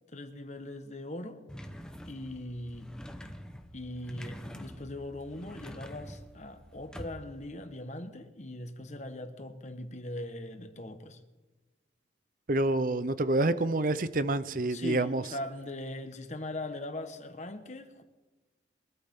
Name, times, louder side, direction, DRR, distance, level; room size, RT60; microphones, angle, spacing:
voice 1, 0.1-1.4 2.1-2.9 3.7-11.2 14.7-18.0, left 1 dB, 40° left, 1.3 m, -40 dB
sound 1, 1.5-7.5, equal, 5° left, 0.9 m, -46 dB
voice 2, 12.5-15.2, right 2 dB, 45° right, 0.7 m, -27 dB
23.0 x 13.0 x 3.7 m
head